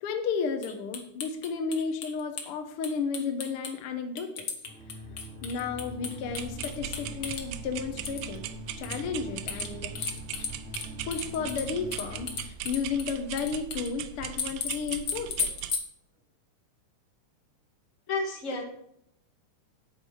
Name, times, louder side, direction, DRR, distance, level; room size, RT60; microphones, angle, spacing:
voice 1, 0.0-4.5 5.4-8.4 8.8-9.9 11.0-15.5, left 5 dB, 70° left, 5 dB, 1.4 m, -33 dB
sound 1, 0.6-2.5 2.8-3.7 4.2-7.4 8.0-8.4 8.8-9.0 9.5-10.9 11.1-13.9 14.4-15.8, left 5 dB, 50° left, 1.3 m, -34 dB
sound 2, 4.7-12.4, equal, 60° right, 4.3 m, -43 dB
sound 3, 6.3-15.7, right 11 dB, 80° right, 1.9 m, -40 dB
voice 2, 18.1-18.6, left 3 dB, 30° left, 0 dB, 1.9 m, -30 dB
9.0 x 8.9 x 4.8 m, 0.74 s
omnidirectional pair, 3.6 m